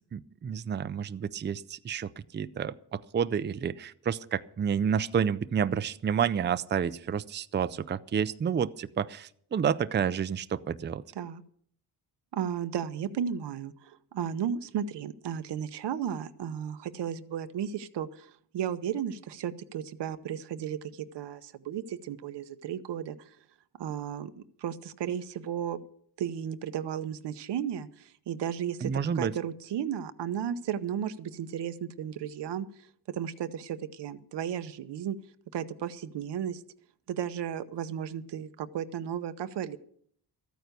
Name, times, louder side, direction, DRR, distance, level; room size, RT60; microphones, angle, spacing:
voice 1, 0.1-11.0 28.8-29.3, right 7 dB, 30° right, 0.4 m, -30 dB
voice 2, 12.3-23.3 23.8-24.3 24.6-25.8 26.2-32.7 33.1-35.2 35.5-36.6 37.1-39.8, right 9 dB, 85° right, 0.9 m, -34 dB
13.5 x 9.3 x 6.7 m
cardioid pair, 105°, 40 cm